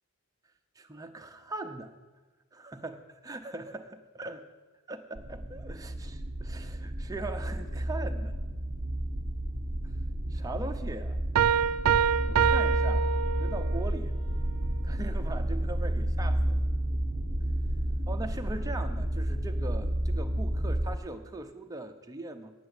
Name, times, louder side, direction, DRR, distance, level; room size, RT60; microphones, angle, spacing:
voice 1, 0.8-1.9 2.5-4.5 4.9-8.3 9.8-9.9 10.3-11.2 12.3-13.1 13.4-14.1 14.8-16.6 18.1-22.5, right 2 dB, 15° right, 6 dB, 0.6 m, -40 dB
sound 1, 5.2-21.0, right 1 dB, 35° right, 0.8 m, -31 dB
sound 2, 11.3-13.8, right 8 dB, 85° right, 0.4 m, -25 dB
8.7 x 6.9 x 8.1 m, 1.3 s
head